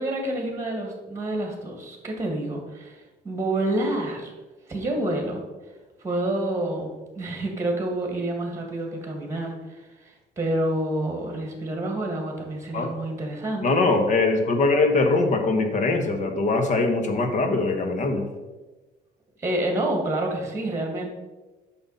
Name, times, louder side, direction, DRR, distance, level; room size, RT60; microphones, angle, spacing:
voice 1, 0.0-4.3 4.7-5.4 6.0-13.7 19.4-21.1, right 1 dB, 15° right, 2 dB, 1.9 m, -28 dB
voice 2, 13.6-18.2, left 3 dB, 45° left, 5 dB, 1.2 m, -22 dB
7.9 x 5.8 x 4.1 m, 1.2 s
cardioid pair, 110°, 17 cm